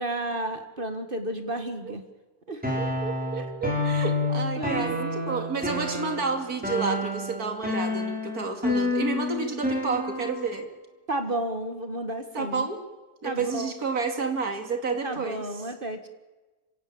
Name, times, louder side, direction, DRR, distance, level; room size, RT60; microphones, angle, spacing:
voice 1, 0.0-2.0 2.5-2.6 3.4-3.5 4.6-4.9 11.1-12.7 13.2-13.7 15.0-16.1, right 1 dB, 35° right, 8 dB, 1.8 m, -32 dB
voice 2, 2.5-10.7 12.3-12.8 13.2-15.7, right 4 dB, 65° right, 6 dB, 2.9 m, -30 dB
sound 1, 2.6-10.5, left 2 dB, 5° right, 5.3 m, -29 dB
26.0 x 16.5 x 8.7 m, 1.2 s
omnidirectional pair, 1.7 m